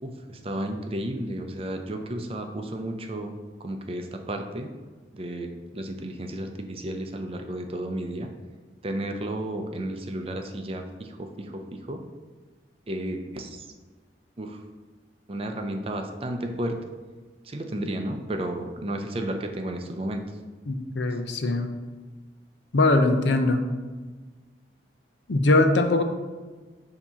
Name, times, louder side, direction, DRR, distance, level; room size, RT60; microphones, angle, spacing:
voice 1, 0.0-4.7 5.1-8.3 8.8-12.0 12.9-13.7 14.4-14.6 15.3-16.8 17.5-20.2, right 1 dB, 30° right, 4 dB, 0.5 m, -33 dB
voice 2, 20.7-21.7 22.7-23.6 25.3-26.0, left 2 dB, 75° left, 6 dB, 0.6 m, -21 dB
7.0 x 2.9 x 5.6 m, 1.4 s
head